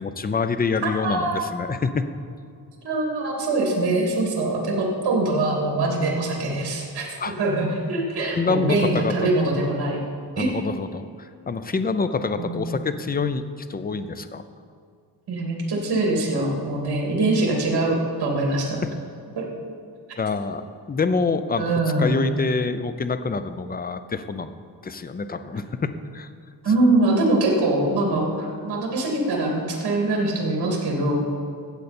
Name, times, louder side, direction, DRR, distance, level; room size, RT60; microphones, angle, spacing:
voice 1, 0.0-2.1 7.2-7.3 8.3-9.1 10.4-13.4 13.7-14.4 20.2-20.6 20.9-24.5 24.8-26.3, left 4 dB, 20° left, 11 dB, 0.5 m, -26 dB
voice 2, 0.8-1.5 2.8-7.1 7.4-10.0 10.4-10.5 12.4-12.8 15.3-18.8 19.3-19.7 21.5-22.3 26.6-31.2, right 2 dB, 65° right, -1 dB, 2.8 m, -23 dB
15.0 x 8.1 x 4.3 m, 2.3 s
cardioid pair, 110°, 42 cm